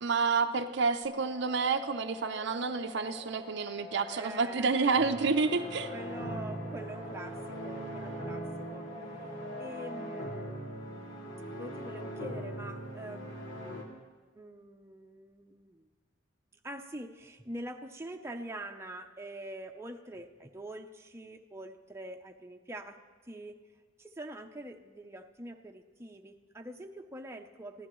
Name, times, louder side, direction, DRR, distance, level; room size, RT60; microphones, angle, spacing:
voice 1, 0.0-5.9, right 4 dB, 60° right, 8 dB, 0.6 m, -29 dB
sound 1, 1.0-10.4, left 2 dB, 45° left, 4.4 m, -47 dB
voice 2, 4.1-5.2 5.9-8.9 9.6-10.6 11.6-14.0 14.3-15.9 16.6-23.6 24.0-27.9, right 1 dB, 15° right, 3 dB, 0.6 m, -45 dB
sound 2, 4.9-13.8, equal, 80° left, 2.4 m, -40 dB
23.0 x 15.0 x 3.1 m, 1.3 s
head